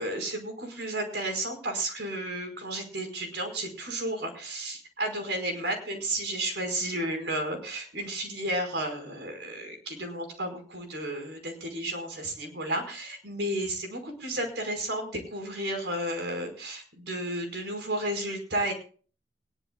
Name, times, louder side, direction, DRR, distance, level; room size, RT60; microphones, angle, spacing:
voice 1, 0.0-18.7, right 1 dB, 70° right, 4 dB, 5.1 m, -32 dB
21.0 x 17.0 x 2.3 m, 0.40 s
head